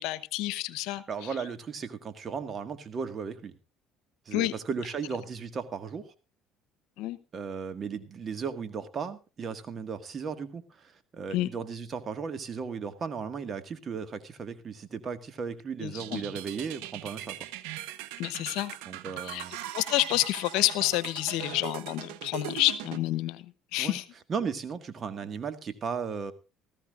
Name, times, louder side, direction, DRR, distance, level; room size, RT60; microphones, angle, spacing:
voice 1, 0.0-1.0 4.3-4.5 7.0-7.2 11.3-11.5 15.8-16.2 18.2-18.7 19.2-19.4 19.7-23.4 23.7-24.0, left 17 dB, 75° left, 17 dB, 0.9 m, -29 dB
voice 2, 0.9-3.5 4.3-6.1 7.3-17.4 18.9-19.5 23.8-24.0 24.3-26.3, right 6 dB, 45° right, 10 dB, 1.8 m, -36 dB
sound 1, 16.0-23.0, right 14 dB, 80° right, 0.9 m, -40 dB
18.0 x 14.5 x 2.5 m, 0.31 s
supercardioid pair, 75°, 0 cm